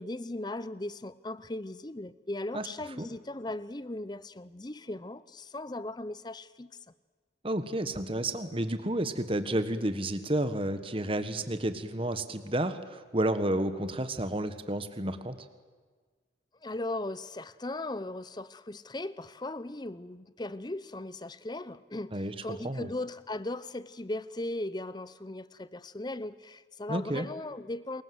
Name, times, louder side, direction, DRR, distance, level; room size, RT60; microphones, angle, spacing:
voice 1, 0.0-6.7 16.6-28.0, left 2 dB, 20° left, 0.7 m, -38 dB
voice 2, 7.4-15.3 22.1-22.3 22.6-22.9 26.9-27.3, right 1 dB, 30° right, 1.5 m, -31 dB
27.0 x 21.5 x 7.8 m
head